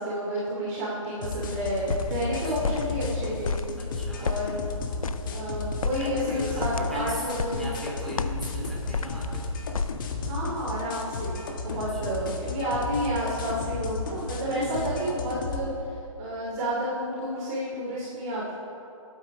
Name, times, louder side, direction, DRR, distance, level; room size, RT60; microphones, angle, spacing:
voice 1, 0.0-3.6 4.2-4.6 5.3-7.7 10.2-15.7 16.2-18.5, equal, 25° right, -7 dB, 3.0 m, -30 dB
sound 1, 1.2-15.6, left 3 dB, 35° left, 1.6 m, -34 dB
sound 2, 1.5-10.1, left 5 dB, 75° left, 0.7 m, -34 dB
voice 2, 2.4-2.8 3.8-4.3 5.9-9.5 11.7-12.2 14.5-15.1, equal, ahead, -6 dB, 2.5 m, -38 dB
21.0 x 9.1 x 5.1 m, 2.8 s
hypercardioid pair, 155°, 18 cm